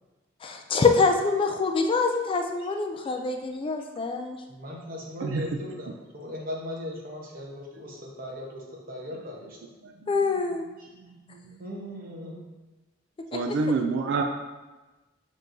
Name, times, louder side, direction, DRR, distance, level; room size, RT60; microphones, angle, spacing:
voice 1, 0.4-4.4 10.1-10.6 13.3-13.4, left 4 dB, 25° left, 4 dB, 0.3 m, -25 dB
voice 2, 4.5-9.7 10.8-11.0 11.6-12.5, left 1 dB, 50° right, -2 dB, 0.9 m, -38 dB
voice 3, 11.0-11.6 13.3-14.2, right 4 dB, 65° right, 4 dB, 0.3 m, -28 dB
6.3 x 3.1 x 2.6 m, 1.1 s
head